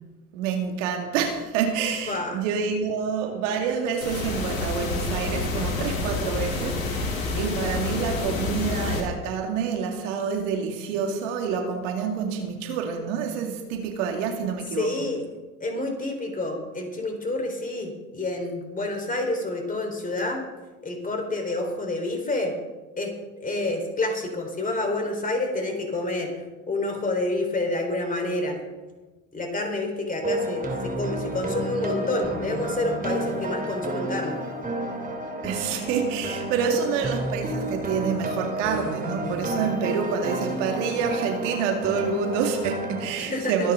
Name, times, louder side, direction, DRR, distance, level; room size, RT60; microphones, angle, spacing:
voice 1, 0.3-15.1 35.4-43.7, right 6 dB, 70° right, 4 dB, 2.3 m, -28 dB
voice 2, 2.1-2.4 14.8-15.2 15.6-20.4 20.8-22.5 23.0-26.3 26.7-28.6 29.3-34.4 36.7-36.9 43.2-43.7, left 2 dB, 20° left, 2 dB, 4.5 m, -28 dB
sound 1, 4.0-9.0, left 3 dB, 85° left, 3.5 m, -28 dB
sound 2, 30.2-43.0, right 1 dB, 20° right, 3.2 m, -30 dB
23.5 x 9.6 x 3.9 m, 1.2 s
hypercardioid pair, 75°, 39 cm